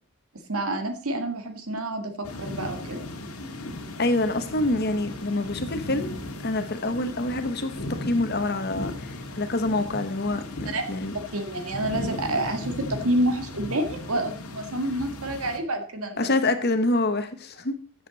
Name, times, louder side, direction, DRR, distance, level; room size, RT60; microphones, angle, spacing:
voice 1, 0.5-3.0 10.7-10.8 11.3-16.3, right 1 dB, 90° right, 6 dB, 1.9 m, -28 dB
sound 1, 2.2-15.6, left 1 dB, 85° left, 1.7 m, -37 dB
voice 2, 4.0-11.1 16.2-17.7, left 2 dB, 45° left, 9 dB, 1.1 m, -26 dB
14.0 x 7.4 x 4.1 m, 0.43 s
head